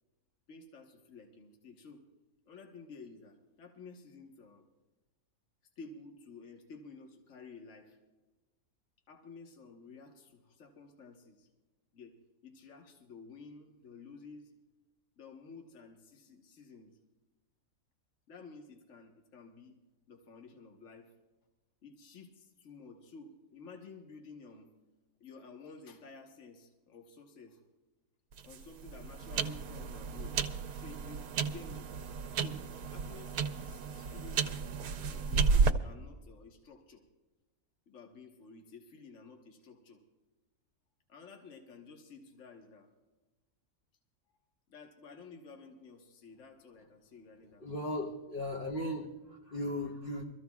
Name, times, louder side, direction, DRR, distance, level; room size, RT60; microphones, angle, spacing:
voice 1, 0.5-2.1 2.5-4.7 5.8-8.0 9.1-11.5 11.9-12.2 12.4-14.5 15.2-17.0 18.3-19.8 20.1-21.1 21.8-24.7 25.2-27.6 28.4-30.3 30.7-31.9 32.4-32.6 32.9-34.8 35.0-37.0 37.9-40.0 41.1-42.9 44.3-44.4 44.7-47.7, left 4 dB, 55° left, 2 dB, 1.6 m, -52 dB
sound 1, 28.3-35.7, right 5 dB, 85° right, 1.2 m, -33 dB
voice 2, 47.6-50.2, left 1 dB, 40° left, 0 dB, 1.1 m, -37 dB
24.5 x 14.0 x 2.3 m, 1.2 s
omnidirectional pair, 1.6 m